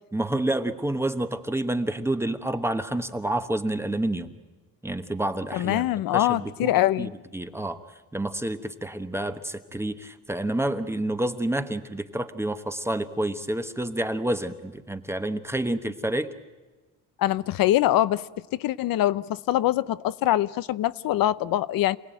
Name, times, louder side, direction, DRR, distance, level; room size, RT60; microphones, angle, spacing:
voice 1, 0.1-4.3 4.8-5.9 6.1-7.8 8.1-16.3, right 1 dB, 5° right, 1.1 m, -29 dB
voice 2, 5.5-7.1 17.2-18.3 18.5-22.0, left 14 dB, 80° left, 0.8 m, -23 dB
28.0 x 18.5 x 9.1 m
cardioid pair, 145°, 34 cm